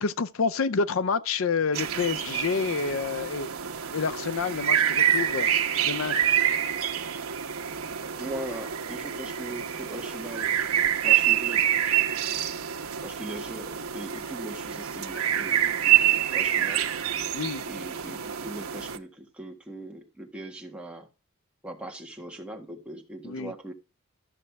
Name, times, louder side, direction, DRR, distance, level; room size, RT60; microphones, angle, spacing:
voice 1, 0.0-3.5 3.9-5.5 5.9-6.2 17.3-17.6 23.2-23.5, left 5 dB, 65° left, 0.5 m, -28 dB
sound 1, 1.7-19.0, right 10 dB, 80° right, 1.0 m, -27 dB
voice 2, 8.1-10.5 11.0-11.7 13.0-16.9 17.7-21.1 21.6-23.7, right 1 dB, 5° right, 1.6 m, -40 dB
13.0 x 6.6 x 3.4 m
head